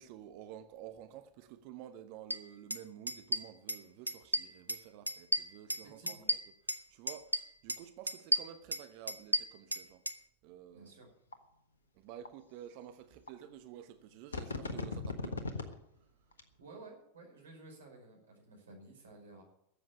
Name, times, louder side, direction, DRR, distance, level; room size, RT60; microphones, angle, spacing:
voice 1, 0.0-6.4 6.9-10.0 10.4-11.1 12.0-15.4, right 10 dB, 45° right, 1.0 m, -51 dB
sound 1, 2.3-2.4 2.7-2.8 3.1-3.8 4.1-4.8 5.1-6.8 7.1-7.8 8.1-10.2, right 1 dB, 85° right, 0.7 m, -33 dB
voice 2, 5.8-6.3 10.7-11.1 16.6-19.4, right 2 dB, 65° right, 5.1 m, -54 dB
sound 2, 11.3-11.4 12.2-12.3 13.3-13.4 14.3-15.7 16.3-16.4, left 4 dB, 70° left, 1.4 m, -37 dB
13.0 x 7.7 x 9.9 m
figure-of-eight pair, 90°, 0 cm